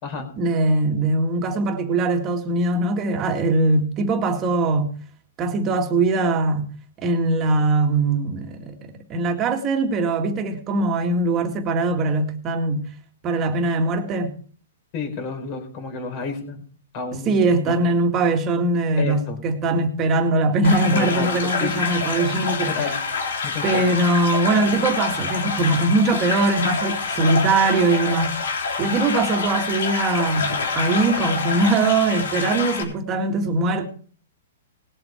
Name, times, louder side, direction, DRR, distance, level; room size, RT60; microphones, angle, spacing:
voice 1, 0.4-5.0 5.4-6.7 7.0-12.9 13.2-14.4 17.1-22.7 23.6-28.4 28.8-33.9, right 2 dB, 25° right, 2.0 m, -21 dB
voice 2, 14.9-16.6 16.9-18.0 19.0-19.4 20.9-21.8 22.7-23.0 23.4-23.9, left 5 dB, 40° left, 4.5 m, -31 dB
sound 1, 20.6-32.8, left 5 dB, 85° left, 3.6 m, -26 dB
19.5 x 7.8 x 4.5 m
hypercardioid pair, 150°, 0 cm